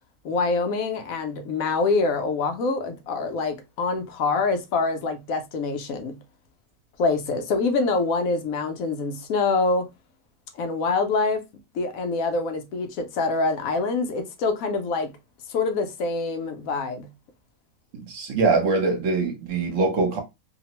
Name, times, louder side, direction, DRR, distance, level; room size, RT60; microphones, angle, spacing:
voice 1, 0.2-6.2 7.0-9.9 10.6-11.4 11.7-15.1 15.5-17.1, left 3 dB, 75° left, 1.0 m, -25 dB
voice 2, 17.9-20.2, right 3 dB, 65° right, 1.1 m, -23 dB
2.8 x 2.0 x 2.9 m
omnidirectional pair, 1.5 m